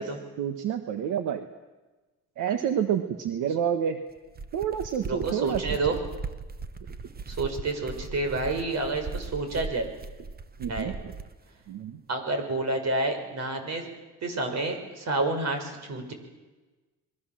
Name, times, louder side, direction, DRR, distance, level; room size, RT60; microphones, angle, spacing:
voice 1, 0.4-1.5 2.4-4.0 4.5-5.6 10.6-11.1 11.7-12.0, right 9 dB, 85° right, 8 dB, 1.5 m, -28 dB
sound 1, 4.2-11.4, right 4 dB, 30° right, 1.2 m, -38 dB
voice 2, 5.0-6.0 7.3-9.9 10.7-10.9 12.1-13.9 14.2-16.1, right 2 dB, 60° right, 6 dB, 6.2 m, -29 dB
28.0 x 22.0 x 7.6 m, 1.2 s
cardioid pair, 90°, 30 cm